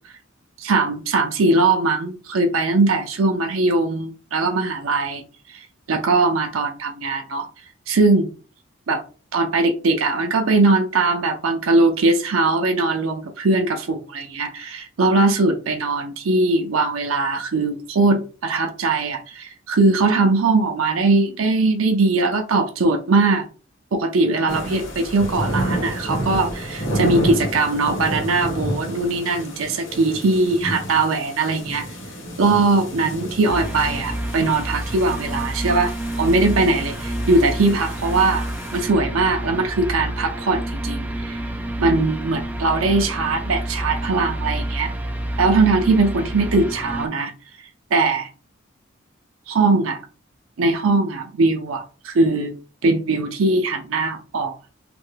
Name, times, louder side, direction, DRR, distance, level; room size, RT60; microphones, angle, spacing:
voice 1, 0.6-5.2 5.5-7.5 7.9-8.3 8.9-9.0 9.3-23.4 23.9-31.9 32.4-38.4 38.7-41.4 41.8-44.9 45.4-47.3 47.9-48.3 49.5-50.0 50.6-52.6 52.8-54.7, right 3 dB, 80° right, 0.5 m, -20 dB
sound 1, 24.5-38.9, equal, 65° left, 1.2 m, -30 dB
sound 2, 33.5-47.1, right 1 dB, 10° right, 0.3 m, -29 dB
3.3 x 2.2 x 3.2 m
head